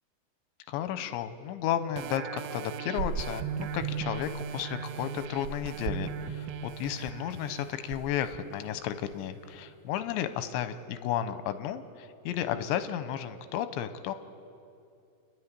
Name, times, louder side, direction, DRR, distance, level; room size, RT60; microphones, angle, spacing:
voice 1, 0.7-14.1, left 10 dB, 90° left, 11 dB, 3.1 m, -33 dB
sound 1, 2.0-9.2 9.7-9.8, right 7 dB, 90° right, 3.1 m, -37 dB
30.0 x 11.5 x 9.6 m, 2.6 s
omnidirectional pair, 5.2 m